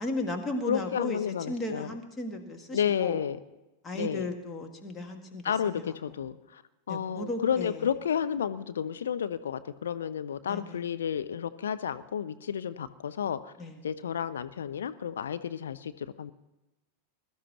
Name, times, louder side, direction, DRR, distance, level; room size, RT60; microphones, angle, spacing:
voice 1, 0.0-3.2 3.8-6.2 6.9-7.8 10.5-10.8 13.6-13.8, left 1 dB, 15° left, 4 dB, 1.7 m, -36 dB
voice 2, 0.7-1.9 2.7-3.4 3.9-4.3 5.4-6.6 6.9-13.5 13.8-16.3, left 8 dB, 65° left, 12 dB, 0.5 m, -31 dB
21.0 x 12.5 x 3.0 m, 0.99 s
figure-of-eight pair, 90°, 0 cm